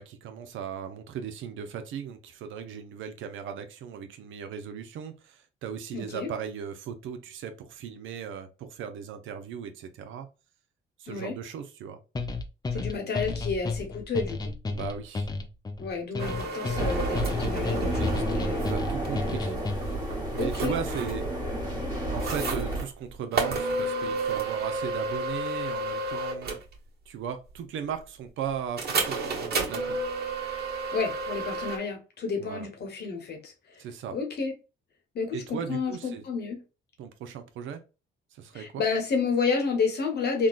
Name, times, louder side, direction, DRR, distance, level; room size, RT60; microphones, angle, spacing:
voice 1, 0.0-10.3 11.0-12.0 12.7-13.3 14.7-15.3 16.2-16.3 17.9-18.2 18.7-19.5 20.3-21.3 22.1-26.6 27.1-30.0 32.4-32.7 33.8-34.2 35.3-36.2 37.0-37.8 38.3-38.8, right 7 dB, 80° right, 0.6 m, -37 dB
voice 2, 5.9-6.3 11.1-11.3 12.7-14.5 15.8-18.8 19.3-19.6 20.4-20.8 30.9-33.8 34.1-34.5 35.1-36.6 38.5-40.5, left 4 dB, 55° left, 1.0 m, -30 dB
sound 1, 12.2-20.1, left 3 dB, 20° left, 0.4 m, -33 dB
sound 2, 16.2-18.2 18.6-19.1 19.6-21.3 22.2-22.9 23.3-26.7 28.8-31.8, right 3 dB, 55° right, 1.2 m, -31 dB
sound 3, 16.7-22.8, right 1 dB, 20° right, 1.4 m, -30 dB
3.6 x 2.2 x 2.4 m
cardioid pair, 90°, 20 cm